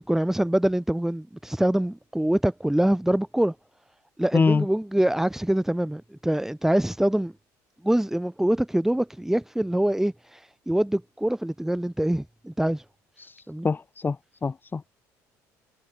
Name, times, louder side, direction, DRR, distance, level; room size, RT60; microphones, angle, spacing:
voice 1, 0.0-3.5 4.2-7.3 7.8-10.1 10.7-12.8 13.5-13.7, right 1 dB, 5° right, 1.8 m, -24 dB
voice 2, 4.3-4.7 13.2-14.2 14.4-14.8, left 4 dB, 25° left, 0.8 m, -24 dB
supercardioid pair, 70°, 8 cm